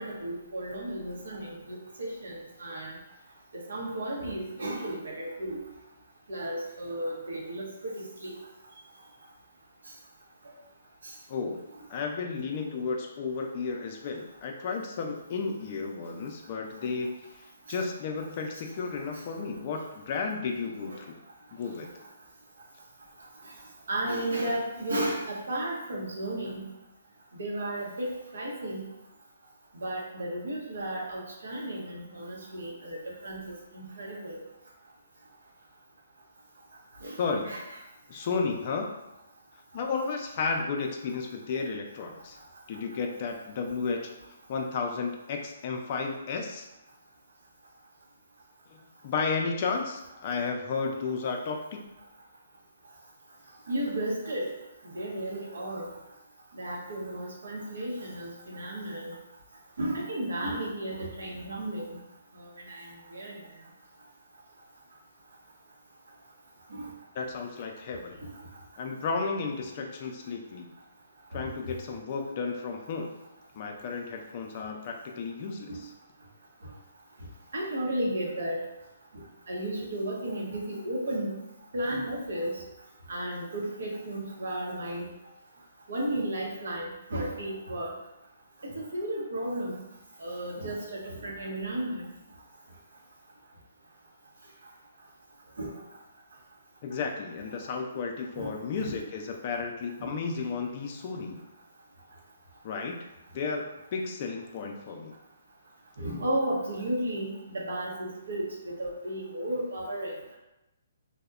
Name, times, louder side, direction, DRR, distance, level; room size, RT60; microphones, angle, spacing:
voice 1, 0.0-2.3 2.6-2.9 3.7-5.6 6.3-8.3 20.9-21.0 23.9-26.6 27.4-28.8 29.8-33.4 33.7-34.4 37.0-37.2 37.4-37.6 53.7-54.5 54.9-55.9 56.6-59.1 59.8-62.0 62.7-63.3 66.7-66.9 71.3-71.5 75.7-75.8 77.5-78.6 79.1-81.4 81.7-82.6 83.1-85.1 85.9-87.9 88.6-89.8 90.2-92.1 95.6-95.7 98.4-98.5 98.8-98.9 100.0-100.1 106.0-110.4, right 1 dB, 80° right, -3 dB, 0.7 m, -33 dB
voice 2, 11.3-11.6 11.9-21.1 21.5-21.9 37.2-37.5 38.1-39.0 39.7-42.4 42.7-44.0 44.5-46.7 48.7-48.8 49.0-51.6 67.2-68.2 68.8-70.7 71.3-73.2 73.6-75.9 96.8-101.4 102.6-103.0 103.3-105.1, left 4 dB, 40° left, 2 dB, 0.3 m, -33 dB
2.7 x 2.0 x 2.3 m, 0.95 s
hypercardioid pair, 150°, 0 cm